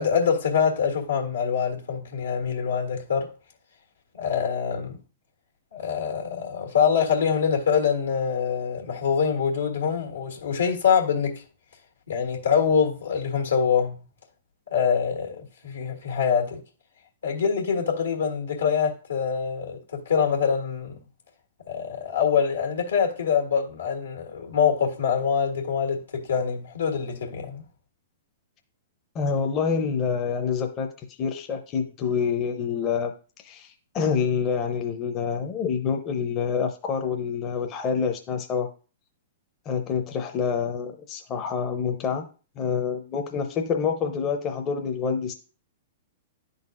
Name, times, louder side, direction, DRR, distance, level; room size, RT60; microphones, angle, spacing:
voice 1, 0.0-3.3 4.1-5.0 5.7-11.4 12.1-14.0 14.7-16.6 17.2-21.0 21.7-27.6, left 7 dB, 85° left, 1.6 m, -24 dB
voice 2, 29.1-33.1 33.4-38.7 39.7-42.3 42.6-45.3, left 6 dB, 30° left, 0.6 m, -27 dB
10.5 x 4.0 x 2.4 m
hypercardioid pair, 115°, 0 cm